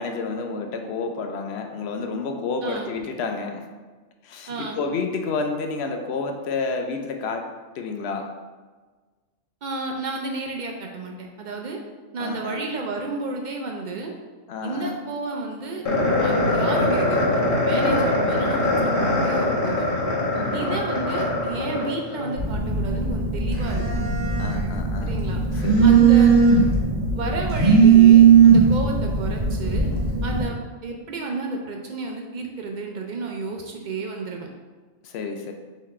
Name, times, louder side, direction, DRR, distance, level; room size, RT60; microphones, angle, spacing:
voice 1, 0.0-3.7 4.2-7.4 7.8-8.3 12.2-12.6 14.5-15.0 20.3-20.8 24.4-25.2 25.6-26.0 35.0-35.5, left 4 dB, 65° left, 4 dB, 0.7 m, -30 dB
voice 2, 2.6-2.9 4.5-4.8 9.6-11.8 12.1-14.1 14.6-15.8 16.2-19.9 20.5-23.8 25.0-25.4 25.8-26.3 27.1-29.9 30.2-34.5, right 3 dB, 60° right, 1 dB, 0.5 m, -31 dB
sound 1, 15.8-22.3, left 2 dB, 45° left, 1.2 m, -22 dB
Telephone, 22.4-30.4, right 6 dB, 35° right, 1.1 m, -17 dB
4.0 x 3.1 x 4.2 m, 1.3 s
omnidirectional pair, 1.3 m